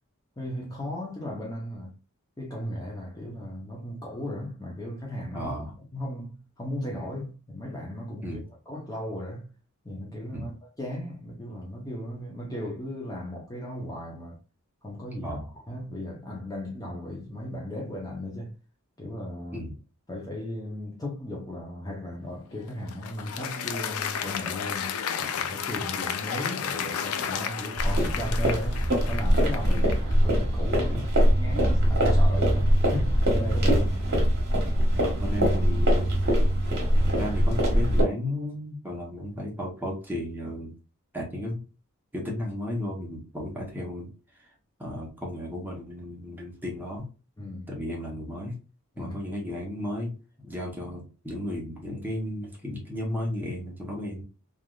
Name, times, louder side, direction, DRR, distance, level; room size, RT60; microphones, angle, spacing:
voice 1, 0.4-1.9 2.4-5.5 5.9-8.4 8.7-9.5 9.8-14.4 14.8-15.4 15.7-18.5 19.0-19.6 20.1-29.9 30.2-31.1 31.4-33.9 47.4-47.7 49.0-49.2, left 1 dB, 15° left, 0.7 m, -36 dB
voice 2, 5.3-5.8 8.2-8.4 10.3-10.5 15.2-15.5 19.5-19.7 29.7-30.0 30.9-31.0 33.7-33.8 35.0-36.2 37.1-40.7 41.1-41.6 42.1-44.1 44.3-44.5 44.8-47.1 47.7-48.6 49.0-50.1 50.4-54.2, left 1 dB, 10° right, 0.9 m, -34 dB
Applause, 22.5-30.1, left 8 dB, 70° left, 0.4 m, -33 dB
sound 1, 27.8-38.0, equal, 50° right, 1.3 m, -22 dB
3.3 x 2.5 x 2.3 m
head